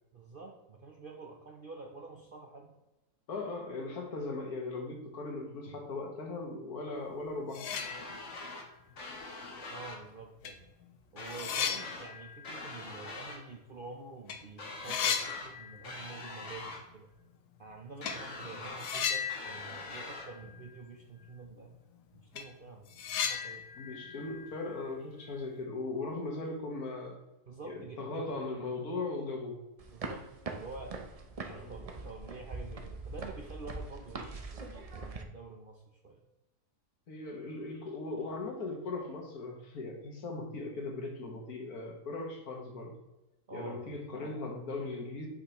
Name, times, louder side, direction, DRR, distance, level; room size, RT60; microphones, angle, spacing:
voice 1, 0.1-2.7 5.7-5.8 8.1-8.2 9.7-10.7 11.1-17.1 17.6-21.8 22.1-23.6 27.5-28.3 29.9-31.0 31.4-36.2 43.5-44.0, right 3 dB, 50° right, 2 dB, 0.7 m, -48 dB
voice 2, 3.3-7.7 23.8-27.2 27.6-29.6 31.5-31.7 37.1-42.9 43.5-45.3, left 3 dB, 70° left, 2 dB, 1.8 m, -38 dB
sound 1, 7.1-7.2 7.5-8.5 8.9-9.0 9.9-10.0 10.4-13.9 14.2-14.4 14.6-16.2 16.5-16.6 18.0-18.3 18.8-20.9 21.2-21.3 21.7-21.8 22.2-25.4, left 7 dB, 85° left, 1.3 m, -37 dB
sound 2, 7.7-8.7 9.0-10.0 11.2-12.1 12.4-13.4 14.6-15.5 15.8-16.8 18.0-18.9 19.3-20.3, left 2 dB, 50° left, 1.4 m, -44 dB
sound 3, 29.8-35.2, right 3 dB, 75° right, 0.3 m, -42 dB
8.2 x 5.7 x 2.9 m, 0.98 s
omnidirectional pair, 1.7 m